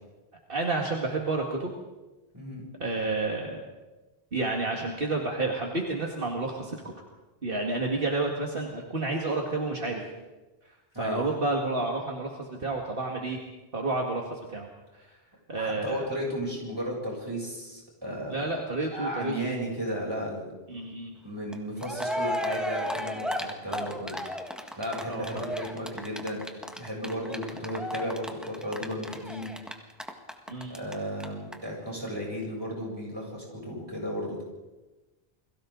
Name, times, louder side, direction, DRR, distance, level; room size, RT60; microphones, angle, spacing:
voice 1, 0.5-1.7 2.8-3.6 4.3-6.9 7.4-10.0 11.0-13.4 13.7-14.7 15.5-16.0 18.3-19.7 20.7-21.1 25.0-25.4 30.5-30.8, right 2 dB, 60° right, 0 dB, 2.2 m, -30 dB
voice 2, 2.3-2.6 10.9-11.3 15.5-18.5 18.9-20.5 21.2-24.2 24.8-29.6 30.7-34.4, equal, 25° right, -3 dB, 8.0 m, -34 dB
Cheering, 21.5-21.6 21.8-30.9 31.2-31.3 31.5-31.6, equal, ahead, 1.7 m, -34 dB
29.5 x 22.0 x 4.0 m, 1.1 s
omnidirectional pair, 1.1 m